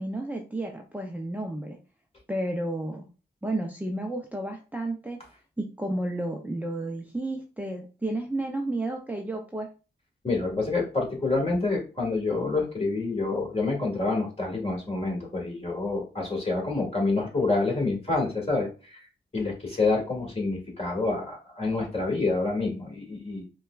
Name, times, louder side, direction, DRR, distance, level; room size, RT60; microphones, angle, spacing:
voice 1, 0.0-1.8 2.3-3.1 3.4-5.2 5.6-9.7, right 1 dB, 10° right, 1 dB, 0.6 m, -32 dB
voice 2, 10.2-19.1 19.3-23.4, left 3 dB, 30° left, -1 dB, 2.0 m, -27 dB
5.1 x 2.3 x 2.4 m, 0.33 s
cardioid pair, 55°, 20 cm